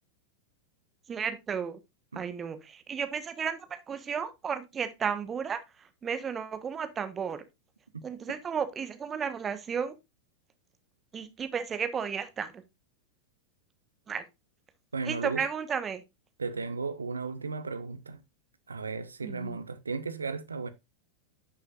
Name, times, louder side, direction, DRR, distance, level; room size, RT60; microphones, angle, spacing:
voice 1, 1.1-1.8 2.1-7.4 8.0-9.9 11.1-12.6 14.1-14.2 15.0-16.0 19.2-19.6, right 7 dB, 20° right, 1.2 m, -33 dB
voice 2, 14.9-15.4 16.4-18.2 18.7-20.7, right 4 dB, 75° right, 0.8 m, -35 dB
11.0 x 6.5 x 2.5 m
figure-of-eight pair, 90°, 0 cm